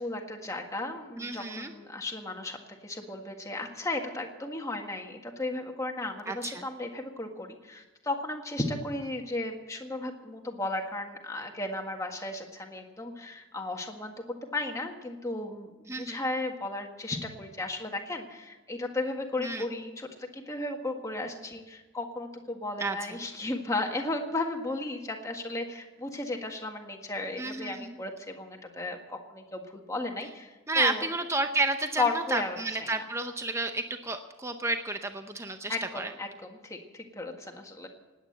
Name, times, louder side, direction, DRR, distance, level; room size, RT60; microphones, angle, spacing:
voice 1, 0.0-14.1 14.5-31.1 32.0-32.9 35.7-37.9, left 2 dB, 15° left, 3 dB, 1.6 m, -35 dB
voice 2, 1.1-1.7 6.3-6.6 15.9-16.2 19.4-19.6 22.8-23.0 27.4-28.0 30.7-36.1, right 2 dB, 15° right, 7 dB, 0.7 m, -31 dB
18.0 x 9.3 x 7.9 m, 1.2 s
head